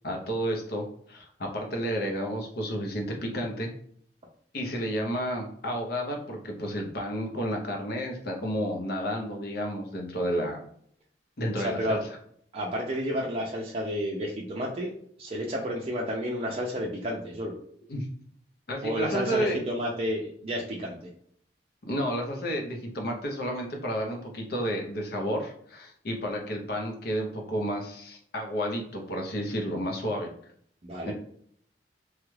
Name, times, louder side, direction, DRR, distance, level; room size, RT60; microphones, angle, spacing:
voice 1, 0.0-3.7 4.5-10.6 11.4-12.0 17.9-18.1 18.7-19.6 21.9-30.3 31.0-31.1, equal, 60° left, 1 dB, 0.7 m, -31 dB
voice 2, 11.6-12.0 12.5-17.6 18.8-21.1 30.8-31.1, equal, 35° right, -3 dB, 0.5 m, -31 dB
3.1 x 2.3 x 3.2 m, 0.63 s
head